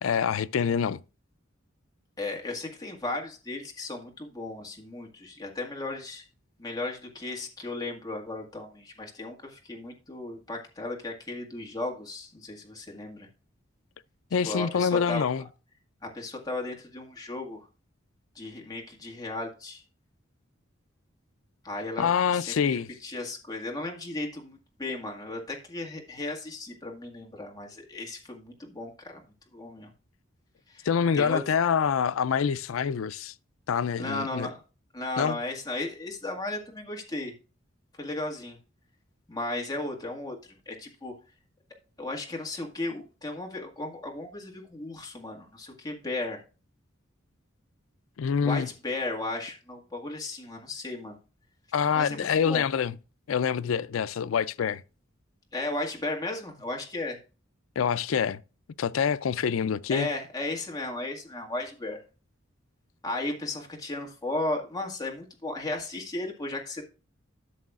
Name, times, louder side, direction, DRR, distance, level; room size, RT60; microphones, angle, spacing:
voice 1, 0.0-1.0 14.3-15.4 22.0-22.9 30.8-33.3 33.7-34.5 35.2-35.4 48.2-48.7 51.7-52.9 53.3-54.8 57.8-58.4 58.8-60.1, left 7 dB, 85° left, 0.4 m, -26 dB
voice 2, 2.2-6.3 6.6-13.3 14.4-15.3 16.1-17.7 18.4-19.8 21.6-29.2 29.5-29.9 30.7-30.9 31.1-31.4 34.0-34.6 34.9-37.3 38.0-38.6 39.3-40.4 40.7-41.1 42.0-46.4 48.4-51.2 51.9-52.6 55.5-57.2 59.9-62.0 63.0-66.8, left 2 dB, 20° left, 1.8 m, -35 dB
13.5 x 6.4 x 2.4 m
head